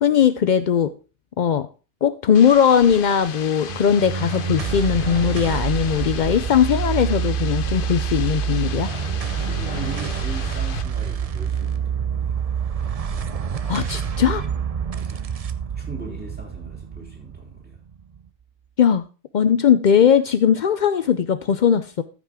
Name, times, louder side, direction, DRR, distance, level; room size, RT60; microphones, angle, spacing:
voice 1, 0.0-0.9 1.4-1.7 2.0-8.9 13.7-14.4 18.8-19.0 19.3-22.0, left 8 dB, 80° left, 0.4 m, -19 dB
sound 1, 2.3-10.8, left 8 dB, 50° left, 0.7 m, -36 dB
sound 2, 3.7-18.3, right 7 dB, 50° right, 0.4 m, -27 dB
voice 2, 9.4-12.4 14.9-15.2 15.7-17.8, right 2 dB, 5° right, 3.3 m, -39 dB
13.5 x 6.1 x 3.6 m
omnidirectional pair, 1.4 m